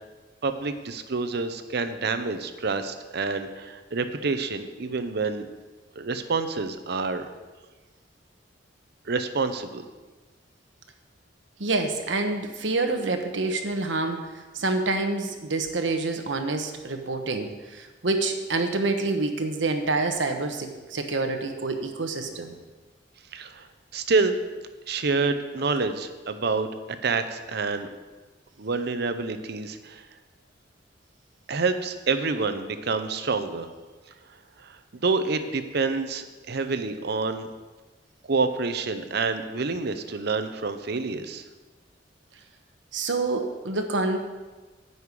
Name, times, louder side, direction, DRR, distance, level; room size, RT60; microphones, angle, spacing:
voice 1, 0.4-5.5 5.9-7.3 9.1-9.9 23.3-23.7 23.9-24.4 24.9-26.7 27.0-27.9 28.6-30.1 31.5-33.7 34.6-37.5 38.3-41.4, right 4 dB, 65° right, 9 dB, 0.8 m, -27 dB
voice 2, 11.6-22.6 42.9-44.2, right 3 dB, 85° right, 5 dB, 1.2 m, -27 dB
9.5 x 5.6 x 8.3 m, 1.3 s
head